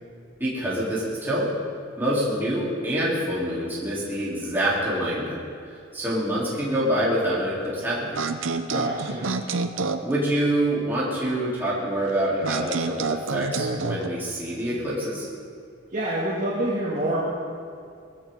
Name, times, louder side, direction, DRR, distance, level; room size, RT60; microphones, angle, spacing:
voice 1, 0.4-1.5 2.0-5.4 5.9-8.2 10.0-15.3, right 1 dB, 10° right, -9 dB, 3.6 m, -26 dB
sound 1, 8.2-10.1 12.4-14.1, right 4 dB, 85° right, 0.8 m, -28 dB
voice 2, 8.7-9.3 15.9-17.2, right 1 dB, 40° right, -8 dB, 2.4 m, -27 dB
21.5 x 15.5 x 3.8 m, 2.3 s
head